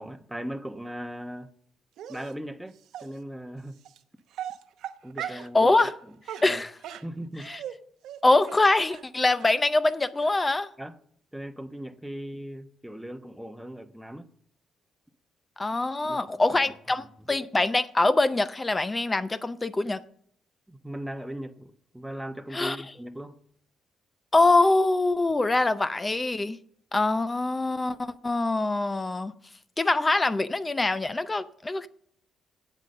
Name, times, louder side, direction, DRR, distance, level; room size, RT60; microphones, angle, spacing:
voice 1, 0.0-1.5 2.1-3.8 5.0-5.7 6.4-6.6 7.0-7.5 10.8-11.0 11.3-14.3 16.0-16.2 16.5-16.6 17.0-17.3 20.7-23.4, right 1 dB, 5° right, 1.0 m, -38 dB
Dog, 2.0-2.3 2.9-3.1 3.8-4.0 4.3-5.5 5.8-5.9 6.2-7.8 8.0-8.2 8.5-8.6 8.9-9.0 9.4-9.5 9.9-10.0 10.2-10.3, right 10 dB, 80° right, 0.8 m, -38 dB
voice 2, 5.5-6.0 6.4-6.8 7.4-7.6 8.2-10.7 15.6-20.0 22.5-22.8 24.3-26.6 26.9-29.3 29.8-31.9, left 2 dB, 20° left, 0.5 m, -24 dB
8.2 x 8.2 x 6.6 m
cardioid pair, 90°, 0 cm